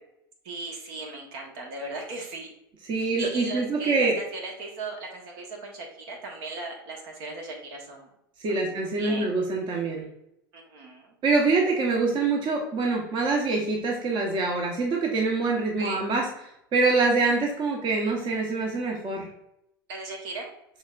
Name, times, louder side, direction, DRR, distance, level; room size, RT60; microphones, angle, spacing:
voice 1, 0.4-2.5 3.0-8.1 8.5-9.4 10.5-11.1 15.8-16.0 19.9-20.5, right 3 dB, 65° right, 1 dB, 1.3 m, -37 dB
voice 2, 2.9-4.1 8.4-10.1 11.2-16.3 16.7-19.3, right 3 dB, 40° right, 0 dB, 1.0 m, -25 dB
6.2 x 3.4 x 2.4 m, 0.79 s
hypercardioid pair, 85°, 12 cm